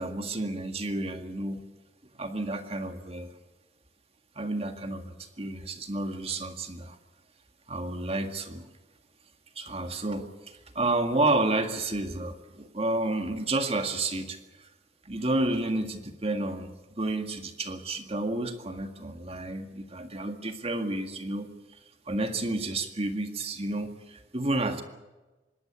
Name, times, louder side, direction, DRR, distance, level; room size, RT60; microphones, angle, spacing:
voice 1, 0.0-1.6 2.2-3.3 4.4-7.0 7.7-8.7 9.6-14.7 15.1-21.5 22.1-24.8, right 2 dB, 35° right, 6 dB, 1.9 m, -31 dB
25.5 x 12.5 x 9.8 m, 1.2 s
head